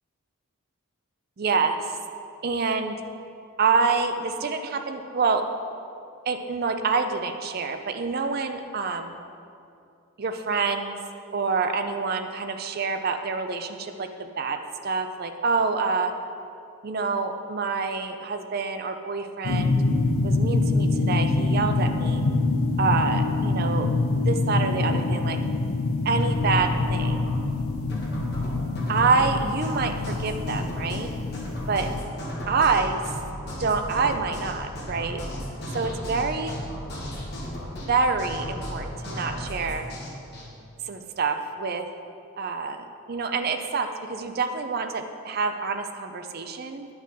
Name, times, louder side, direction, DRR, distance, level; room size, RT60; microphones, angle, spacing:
voice 1, 1.4-2.0 2.4-3.0 3.6-5.4 6.3-9.2 10.2-11.0 11.3-14.6 14.8-16.1 16.8-19.8 20.2-22.2 22.8-23.9 24.2-25.4 26.0-27.3 28.9-31.1 31.7-31.9 32.5-33.0 33.6-35.2 35.7-36.6 37.9-39.9 40.9-41.9 42.4-46.9, right 4 dB, 45° right, 7 dB, 0.4 m, -27 dB
sound 1, 19.4-32.0, left 3 dB, 80° left, 0.6 m, -25 dB
sound 2, 26.2-40.5, equal, 50° left, 1.5 m, -35 dB
9.6 x 5.6 x 3.6 m, 2.5 s
head